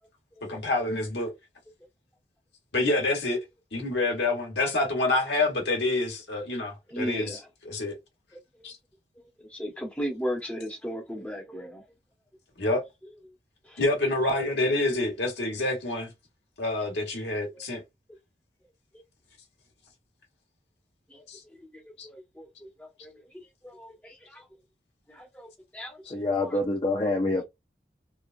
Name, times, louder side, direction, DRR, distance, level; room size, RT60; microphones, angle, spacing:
voice 1, 0.5-1.3 2.7-3.4 3.7-7.4 7.6-7.9 8.6-8.7 12.6-12.8 13.8-16.1 16.6-17.8 21.3-21.4 22.0-22.1, left 2 dB, 75° left, 1.2 m, -27 dB
voice 2, 6.9-7.5 8.6-8.7 9.2-11.8 13.7-13.8 21.1-21.2 21.5-24.4 25.1-26.0 26.4-26.6, equal, 5° left, 0.8 m, -37 dB
voice 3, 26.1-27.4, left 2 dB, 30° left, 0.4 m, -26 dB
3.1 x 2.3 x 2.5 m
head